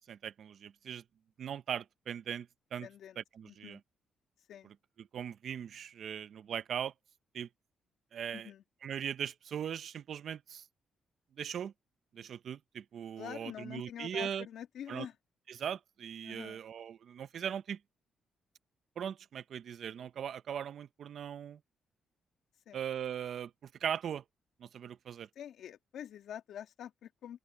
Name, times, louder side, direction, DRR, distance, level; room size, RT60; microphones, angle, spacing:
voice 1, 0.1-1.0 1.4-2.9 3.2-3.8 5.0-6.9 7.3-7.5 8.1-8.5 8.8-10.6 11.4-11.7 12.1-14.4 14.9-15.1 15.5-17.8 19.0-21.6 22.7-24.2 24.6-25.3, right 8 dB, 60° right, 0.9 m, -39 dB
voice 2, 2.8-3.8 4.5-4.7 8.3-8.6 13.2-15.2 16.2-16.6 22.7-22.8 25.3-27.4, left 10 dB, 75° left, 2.6 m, -46 dB
open air
cardioid pair, 110°, 0 cm